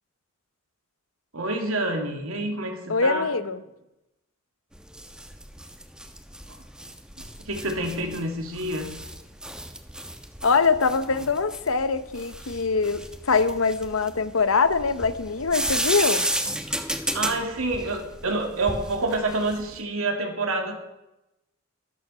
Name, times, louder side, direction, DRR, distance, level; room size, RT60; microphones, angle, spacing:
voice 1, 1.3-3.3 7.5-8.9 16.9-20.8, right 2 dB, 85° right, 3 dB, 2.6 m, -28 dB
voice 2, 2.9-3.6 10.4-16.3, left 4 dB, 75° left, 13 dB, 0.9 m, -23 dB
sound 1, 4.7-19.8, right 1 dB, 5° right, 1.2 m, -33 dB
13.0 x 12.0 x 5.6 m, 0.92 s
head